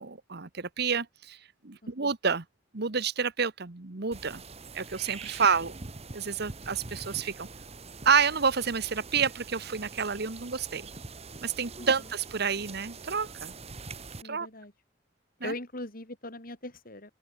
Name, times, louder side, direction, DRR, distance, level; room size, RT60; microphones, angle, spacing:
voice 1, 0.0-1.4 1.6-2.4 2.7-4.4 4.7-5.7 6.1-7.5 8.0-10.9 11.4-13.5 14.2-14.5 15.4-15.5, right 6 dB, 60° right, 1.3 m, -29 dB
sound 1, 4.1-14.2, right 4 dB, 35° right, 1.5 m, -44 dB
voice 2, 14.2-14.7 15.4-17.1, left 2 dB, 50° left, 6.0 m, -40 dB
open air
head